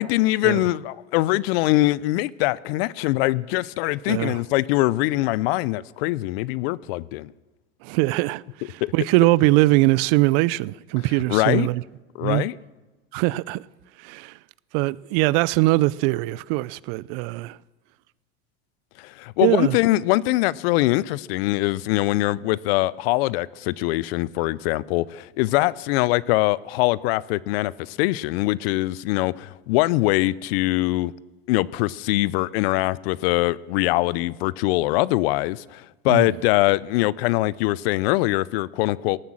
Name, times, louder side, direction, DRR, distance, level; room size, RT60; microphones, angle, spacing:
voice 1, 0.0-7.3 8.8-8.9 11.3-11.7 12.1-12.6 19.0-31.1 31.5-39.2, left 18 dB, 75° left, 0.6 m, -23 dB
voice 2, 4.1-4.4 7.8-11.8 12.2-12.4 13.1-13.6 14.0-14.4 14.7-17.6 19.4-19.8 36.1-36.3, right 20 dB, 65° right, 0.5 m, -21 dB
17.5 x 9.4 x 7.5 m
supercardioid pair, 95°, 31 cm